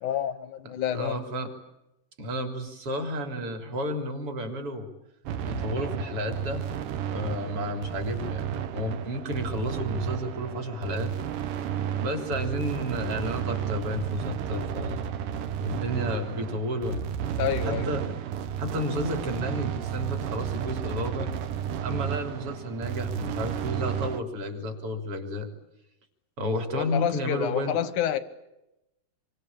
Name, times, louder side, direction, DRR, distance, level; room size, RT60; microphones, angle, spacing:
voice 1, 0.0-1.2 17.4-17.9 26.7-28.2, left 10 dB, 65° left, 2.1 m, -28 dB
voice 2, 0.9-1.5 2.2-4.9 5.4-6.7 7.1-11.1 12.0-15.0 15.6-17.0 17.6-18.1 18.6-21.3 21.8-25.5 26.4-27.8, equal, 35° right, 4.1 m, -32 dB
sound 1, 5.2-24.2, right 9 dB, 65° right, 2.5 m, -32 dB
27.0 x 25.0 x 8.8 m
omnidirectional pair, 4.6 m